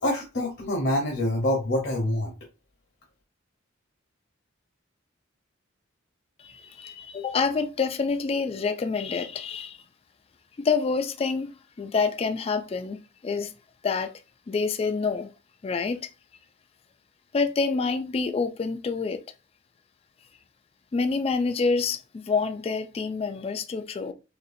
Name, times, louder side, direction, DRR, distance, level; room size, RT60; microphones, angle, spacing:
voice 1, 0.0-2.3, left 1 dB, 55° left, 0.8 m, -26 dB
voice 2, 6.4-9.8 10.6-13.0 13.2-13.5 13.8-14.1 14.5-15.3 15.6-16.1 17.3-19.2 20.9-24.1, left 4 dB, 30° left, 0.3 m, -27 dB
4.1 x 2.9 x 2.6 m
head